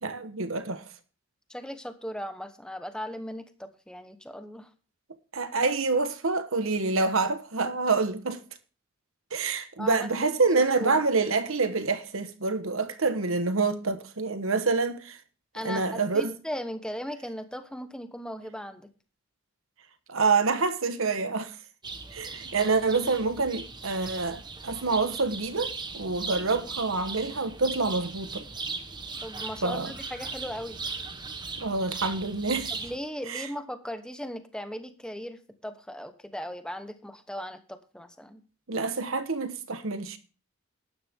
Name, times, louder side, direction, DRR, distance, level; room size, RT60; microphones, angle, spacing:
voice 1, 0.0-0.8 5.3-8.4 9.3-15.2 15.6-16.3 20.1-21.5 22.1-28.4 29.6-29.9 31.6-32.7 33.3-33.5 38.7-40.2, right 4 dB, 70° right, 1.3 m, -27 dB
voice 2, 1.5-4.7 9.8-10.5 10.8-11.0 15.5-18.9 29.2-30.8 32.7-38.4, equal, 5° left, 1.1 m, -38 dB
sound 1, 21.8-33.0, right 4 dB, 20° right, 1.1 m, -38 dB
12.5 x 10.5 x 3.6 m
head